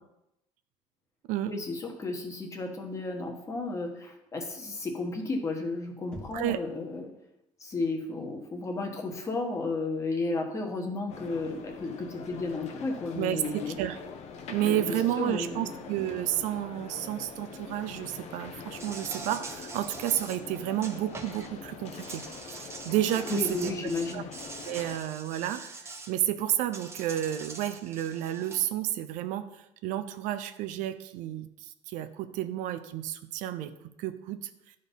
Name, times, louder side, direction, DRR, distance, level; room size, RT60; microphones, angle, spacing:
voice 1, 1.5-7.0 7.6-13.8 14.6-15.7 23.3-24.3, left 3 dB, 25° left, 3 dB, 1.4 m, -33 dB
Knock, 6.1-6.8, left 1 dB, 5° left, 1.1 m, -44 dB
sound 1, 11.1-25.0, left 5 dB, 60° left, 0.9 m, -44 dB
voice 2, 13.1-14.0 14.5-22.2 22.5-23.7 24.1-24.2 24.7-29.5 29.8-33.7 34.0-34.5, right 12 dB, 85° right, 11 dB, 0.6 m, -31 dB
Insect, 18.7-21.5 21.9-26.1 26.7-28.7, right 4 dB, 20° right, 0.8 m, -44 dB
11.5 x 4.0 x 5.4 m, 0.87 s
cardioid pair, 150°, 13 cm